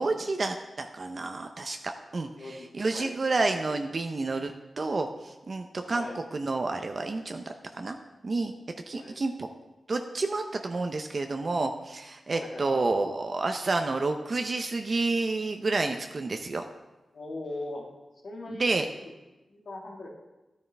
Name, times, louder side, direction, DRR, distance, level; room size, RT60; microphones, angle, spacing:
voice 1, 0.0-8.0 8.2-8.5 8.9-9.5 9.9-16.6 18.5-18.9, right 3 dB, 50° right, 5 dB, 0.6 m, -30 dB
voice 2, 2.4-3.1 5.9-6.2 9.0-9.2 12.3-12.9 17.1-17.9 18.2-18.7 19.0-19.1 19.5-20.1, left 2 dB, 70° left, -1 dB, 1.9 m, -40 dB
12.0 x 9.4 x 3.4 m, 1.1 s
wide cardioid pair, 80°, 0 cm